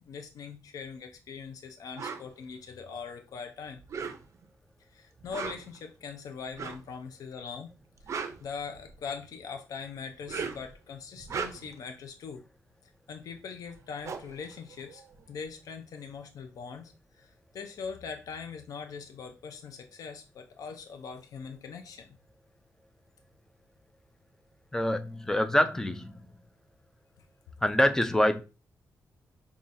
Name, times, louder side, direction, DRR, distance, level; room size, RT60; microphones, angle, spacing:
voice 1, 0.1-3.8 4.9-7.7 8.4-12.4 12.8-16.9 17.2-22.2, left 6 dB, 75° left, 0.5 m, -41 dB
sound 1, 2.0-2.3 3.8-4.5 5.2-5.8 6.5-6.9 7.8-9.1 10.1-10.7 11.2-11.8 13.4-13.5 13.7-15.4, right 6 dB, 55° right, 0.4 m, -38 dB
voice 2, 24.7-26.3 27.6-28.4, left 1 dB, 10° left, 0.4 m, -25 dB
5.4 x 2.4 x 2.5 m
wide cardioid pair, 150°, 6 cm